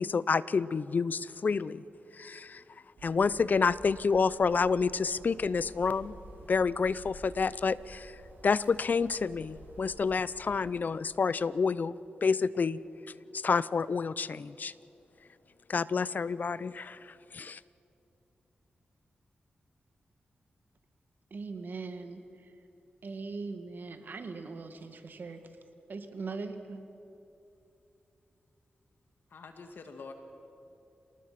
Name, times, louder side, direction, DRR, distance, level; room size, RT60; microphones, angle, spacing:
voice 1, 0.0-1.8 2.2-2.6 3.0-6.1 6.5-8.1 8.4-11.9 12.2-12.8 13.4-14.7 15.7-17.0 17.3-17.6, left 5 dB, 55° left, 0.6 m, -28 dB
sound 1, 3.0-10.6, right 1 dB, 90° right, 6.1 m, -52 dB
voice 2, 21.3-22.7 23.0-25.6 25.9-26.8, right 4 dB, 65° right, 1.8 m, -41 dB
voice 3, 29.3-30.1, left 4 dB, 75° left, 1.6 m, -46 dB
28.0 x 19.0 x 5.9 m
cardioid pair, 70°, 4 cm